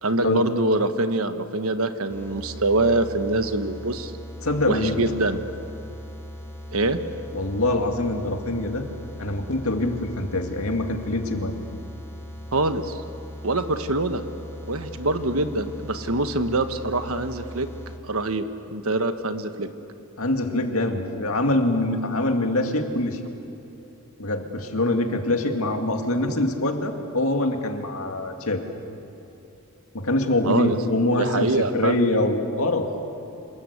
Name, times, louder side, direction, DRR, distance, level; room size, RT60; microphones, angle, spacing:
voice 1, 0.0-4.1 4.7-5.4 6.7-7.0 12.5-13.0 13.4-14.2 14.7-17.7 18.0-19.7 30.4-30.8 31.2-32.0, right 2 dB, 70° right, 9 dB, 1.4 m, -24 dB
sound 1, 2.1-18.0, equal, 10° left, 2.9 m, -39 dB
voice 2, 4.4-5.0 7.3-8.8 9.2-11.5 20.2-23.2 24.2-28.6 29.9-32.9, left 2 dB, 70° left, 4 dB, 2.3 m, -24 dB
27.0 x 20.5 x 8.2 m, 2.9 s
head